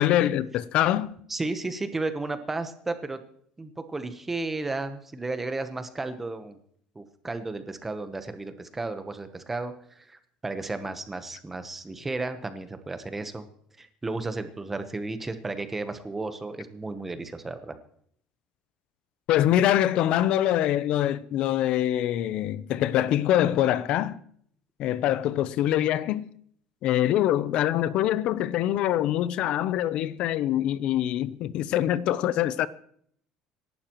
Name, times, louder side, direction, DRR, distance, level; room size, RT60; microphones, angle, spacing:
voice 1, 0.0-1.1 19.3-24.2 24.8-26.3 26.8-32.7, left 12 dB, 50° left, 0.6 m, -24 dB
voice 2, 1.3-3.2 3.6-6.6 6.9-13.5 13.8-17.8, right 3 dB, 10° right, 1.0 m, -33 dB
26.5 x 11.5 x 3.1 m
cardioid pair, 170°, 2 cm